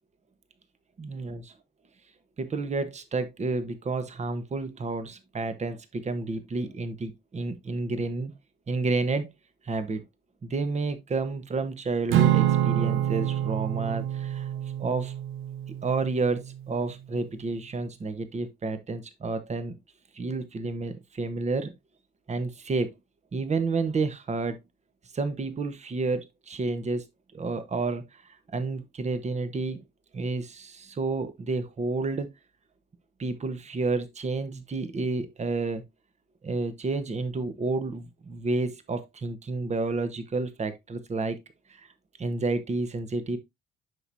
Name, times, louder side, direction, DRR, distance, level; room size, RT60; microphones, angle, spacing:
voice 1, 1.0-1.4 2.4-8.3 8.7-9.3 9.6-10.0 10.4-14.5 14.8-15.1 15.8-19.8 20.1-21.7 22.3-22.9 23.3-24.6 25.1-27.1 27.3-29.8 30.1-32.3 33.2-35.8 36.4-41.4 41.7-41.9 42.2-43.4, right 3 dB, 35° right, 1.2 m, -30 dB
Acoustic guitar / Strum, 12.1-16.6, right 12 dB, 85° right, 0.8 m, -26 dB
7.8 x 6.2 x 2.7 m
cardioid pair, 90°, 20 cm